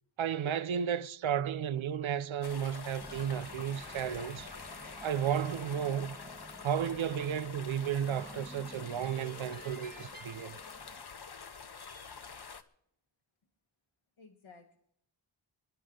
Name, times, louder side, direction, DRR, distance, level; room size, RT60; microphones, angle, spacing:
voice 1, 0.2-4.5 5.0-6.2 6.6-10.6, right 8 dB, 90° right, 0.6 m, -33 dB
sound 1, 2.4-12.6, left 5 dB, 55° left, 1.0 m, -47 dB
sound 2, 3.0-11.6, right 2 dB, 20° right, 1.2 m, -51 dB
voice 2, 4.1-5.0 14.2-14.8, left 4 dB, 85° left, 1.4 m, -57 dB
26.5 x 10.0 x 3.7 m
wide cardioid pair, 50°, 46 cm